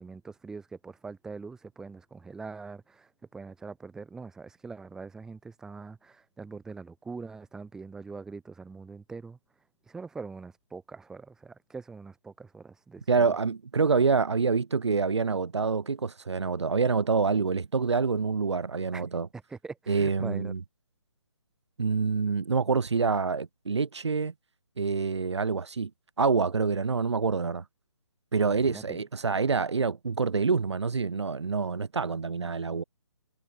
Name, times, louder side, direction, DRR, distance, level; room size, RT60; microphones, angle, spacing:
voice 1, 0.0-9.4 9.9-13.3 18.9-19.0 19.5-20.5 28.4-29.0, right 4 dB, 5° right, 6.2 m, -43 dB
voice 2, 13.1-19.3 19.9-20.6 21.8-24.3 24.8-25.9 26.2-27.6 28.3-32.8, right 5 dB, 65° right, 4.8 m, -26 dB
hypercardioid pair, 170°, 15 cm